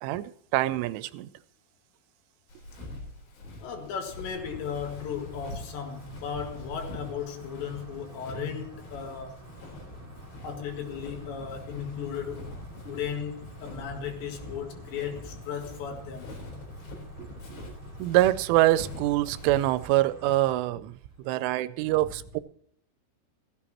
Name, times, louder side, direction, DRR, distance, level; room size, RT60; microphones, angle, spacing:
voice 1, 0.0-1.3 17.2-17.6 18.0-20.9 21.2-22.4, right 16 dB, 85° right, 3.1 m, -25 dB
Walk footsteps, 2.5-19.8, left 2 dB, 90° left, 6.7 m, -44 dB
voice 2, 3.6-9.4 10.4-12.5 12.9-16.3, left 7 dB, 70° left, 4.0 m, -36 dB
sound 1, 4.3-20.5, right 3 dB, 15° right, 3.0 m, -49 dB
15.5 x 15.0 x 3.0 m
omnidirectional pair, 5.5 m